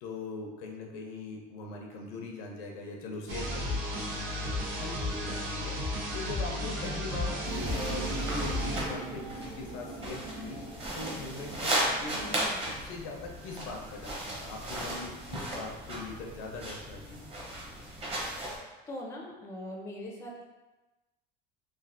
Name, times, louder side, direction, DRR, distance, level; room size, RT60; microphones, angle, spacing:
voice 1, 0.0-4.5 4.8-5.8 6.1-10.6 10.9-17.2, left 3 dB, 90° left, 0 dB, 0.6 m, -41 dB
sound 1, 3.3-8.8, left 1 dB, 80° right, 0.9 m, -33 dB
sound 2, 7.4-18.6, right 1 dB, 30° right, 0.8 m, -36 dB
sound 3, 7.4-12.5, right 3 dB, 65° right, 1.3 m, -42 dB
voice 2, 18.9-20.4, left 1 dB, 15° left, -1 dB, 0.4 m, -41 dB
3.2 x 2.4 x 2.5 m, 1.1 s
cardioid pair, 140°, 20 cm